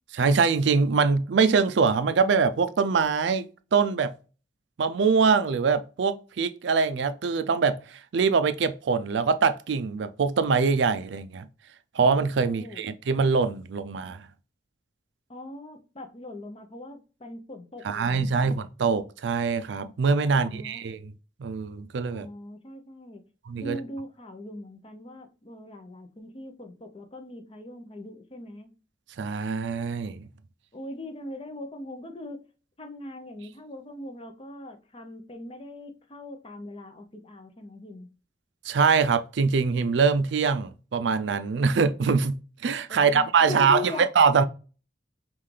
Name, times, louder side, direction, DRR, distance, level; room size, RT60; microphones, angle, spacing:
voice 1, 0.1-3.5 3.7-4.1 4.8-11.5 11.9-14.2 17.8-21.1 21.4-22.3 23.5-23.8 29.2-30.2 38.6-44.4, right 5 dB, 75° right, 0.4 m, -23 dB
voice 2, 12.4-12.9 15.3-18.6 20.3-21.0 22.1-23.2 23.6-28.7 30.7-32.4 32.8-38.1 42.9-44.1, left 2 dB, 30° left, 0.7 m, -40 dB
5.5 x 2.5 x 3.3 m
head